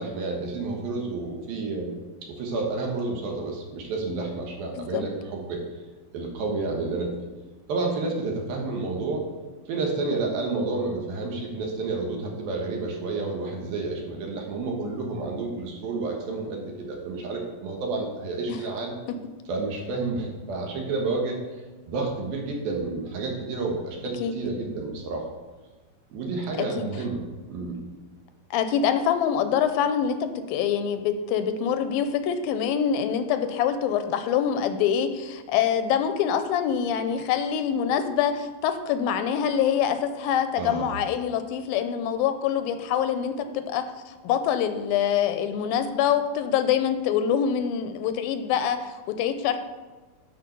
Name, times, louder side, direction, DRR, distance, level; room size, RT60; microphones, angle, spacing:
voice 1, 0.0-1.9 2.2-5.6 6.1-7.1 7.7-9.2 9.7-19.0 19.5-21.4 21.9-25.2 26.1-27.8 40.6-41.0, right 3 dB, 80° right, 0 dB, 3.2 m, -30 dB
voice 2, 28.5-49.6, left 8 dB, 85° left, 9 dB, 2.4 m, -25 dB
11.0 x 4.9 x 5.4 m, 1.3 s
omnidirectional pair, 4.2 m